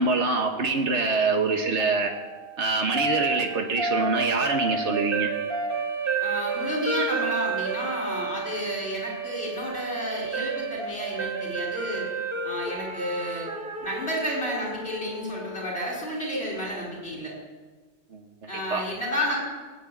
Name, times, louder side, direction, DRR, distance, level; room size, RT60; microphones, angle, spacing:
voice 1, 0.0-2.1 2.6-5.3 18.1-18.8, right 3 dB, 90° right, 3 dB, 1.6 m, -25 dB
sound 1, 1.8-15.9, right 4 dB, 55° right, 1.6 m, -31 dB
voice 2, 6.2-12.1 12.4-13.5 13.8-17.3 18.5-19.4, equal, 65° left, -2 dB, 5.2 m, -31 dB
18.0 x 8.7 x 8.6 m, 1.3 s
omnidirectional pair, 1.1 m